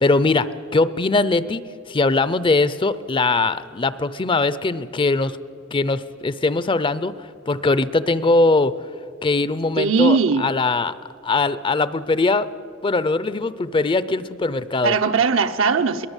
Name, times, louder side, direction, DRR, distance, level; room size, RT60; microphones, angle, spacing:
voice 1, 0.0-1.6 1.9-5.4 5.7-8.7 9.2-10.9 11.2-12.5 12.8-15.0, left 3 dB, 25° left, 16 dB, 0.5 m, -21 dB
voice 2, 9.8-10.5 14.8-16.1, right 5 dB, 75° right, 8 dB, 0.9 m, -19 dB
21.5 x 19.0 x 8.2 m, 2.4 s
head